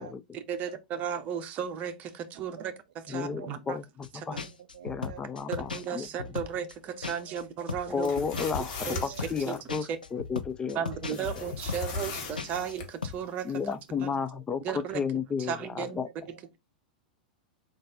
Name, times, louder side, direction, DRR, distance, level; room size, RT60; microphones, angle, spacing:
voice 1, 0.3-2.7 3.1-3.8 4.3-4.4 5.5-8.1 8.9-9.0 9.5-9.6 9.9-10.0 10.7-13.5 14.0-14.1 14.6-15.0 15.5-16.0, right 8 dB, 35° right, 0.7 m, -35 dB
voice 2, 2.3-2.7 3.1-3.5 4.3-5.2 7.3-7.4 9.1-9.2 10.9-11.4 12.0-12.1 12.6-12.7 14.3-14.4 16.0-16.6, right 10 dB, 60° right, 0.4 m, -49 dB
voice 3, 3.1-4.4 4.8-6.1 7.9-10.8 11.1-11.5 13.4-16.1, left 6 dB, 20° left, 0.4 m, -33 dB
sound 1, 4.0-4.1 4.3-7.4 7.7-12.7 13.0-13.2, left 5 dB, 85° left, 0.6 m, -37 dB
sound 2, 7.9-9.6 11.1-12.9, left 4 dB, 50° left, 1.3 m, -37 dB
3.8 x 2.6 x 3.7 m
figure-of-eight pair, 95°, 5 cm